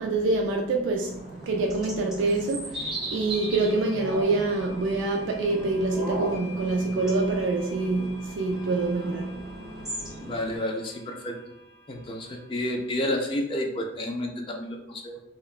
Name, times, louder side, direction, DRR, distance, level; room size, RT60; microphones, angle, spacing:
voice 1, 0.0-10.3, right 3 dB, 80° right, 0.3 m, -26 dB
sound 1, 1.0-10.6, right 1 dB, 5° right, 0.9 m, -38 dB
sound 2, 2.3-2.4 3.3-13.4, left 2 dB, 80° left, 0.6 m, -49 dB
voice 2, 10.2-11.4 11.9-15.2, left 1 dB, 30° left, 0.3 m, -30 dB
2.8 x 2.1 x 2.3 m
head